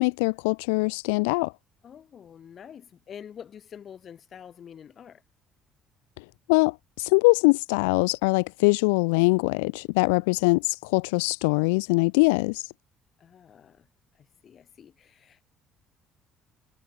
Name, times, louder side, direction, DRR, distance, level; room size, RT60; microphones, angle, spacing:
voice 1, 0.0-1.5 6.2-12.7, left 29 dB, 90° left, 0.8 m, -23 dB
voice 2, 1.8-5.2 13.2-13.9 14.1-15.4, left 8 dB, 50° left, 5.3 m, -47 dB
supercardioid pair, 70°, 0 cm